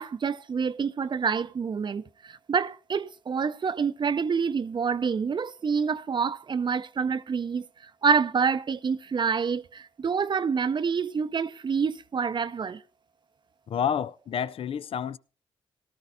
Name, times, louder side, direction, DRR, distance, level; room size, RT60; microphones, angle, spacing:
voice 1, 0.0-12.8, right 6 dB, 50° right, 0.6 m, -27 dB
voice 2, 13.7-15.2, left 8 dB, 65° left, 0.5 m, -29 dB
17.5 x 13.0 x 2.6 m
supercardioid pair, 40°, 10 cm